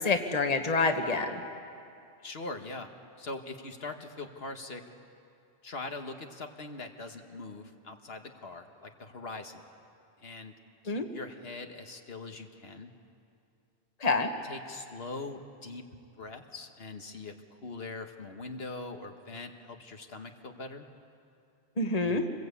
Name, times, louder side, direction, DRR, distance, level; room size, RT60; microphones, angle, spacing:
voice 1, 0.0-1.4 10.9-11.0 14.0-14.3 21.8-22.3, left 3 dB, 40° left, 5 dB, 1.5 m, -27 dB
voice 2, 2.2-2.9 3.2-4.8 5.6-9.6 10.2-10.5 10.8-12.9 14.4-15.8 16.2-20.9 22.0-22.2, left 3 dB, 70° left, 4 dB, 1.6 m, -42 dB
27.0 x 21.5 x 8.4 m, 2.5 s
omnidirectional pair, 1.1 m